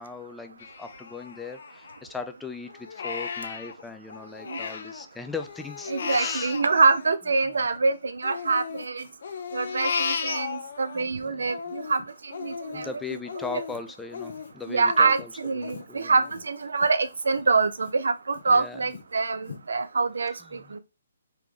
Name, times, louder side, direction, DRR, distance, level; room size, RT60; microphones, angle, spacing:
voice 1, 0.0-6.5 10.9-11.5 12.7-16.2 18.5-18.8 20.5-20.7, left 4 dB, 5° left, 0.4 m, -39 dB
Crying sobbing, 0.6-2.3 2.7-5.0 5.4-7.8 8.2-11.0 11.4-16.9 17.3-17.4 17.9-18.4 18.9-19.0 19.5-19.6, left 5 dB, 60° left, 0.6 m, -35 dB
voice 2, 5.9-9.0 9.5-12.0 12.4-12.9 14.7-20.8, right 4 dB, 80° right, 0.5 m, -25 dB
3.7 x 3.0 x 3.4 m
hypercardioid pair, 150°, 0 cm